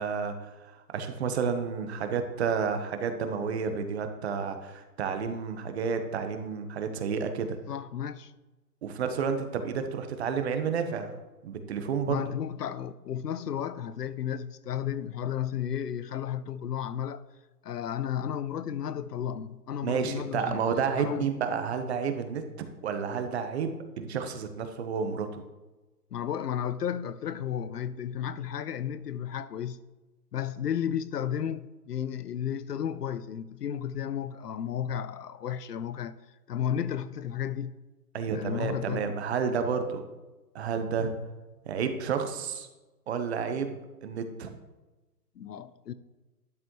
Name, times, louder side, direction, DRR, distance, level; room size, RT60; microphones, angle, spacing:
voice 1, 0.0-7.6 8.8-11.2 11.4-12.2 19.8-22.4 22.8-25.4 38.1-40.1 40.5-41.1 41.6-42.7 43.1-44.6, right 6 dB, 40° right, 1.2 m, -31 dB
voice 2, 7.7-8.3 12.1-17.2 17.6-21.3 26.1-29.8 30.3-36.1 36.5-37.7 38.3-39.1 45.4-45.9, left 9 dB, 75° left, 0.8 m, -33 dB
12.0 x 9.4 x 3.2 m
hypercardioid pair, 150°, 48 cm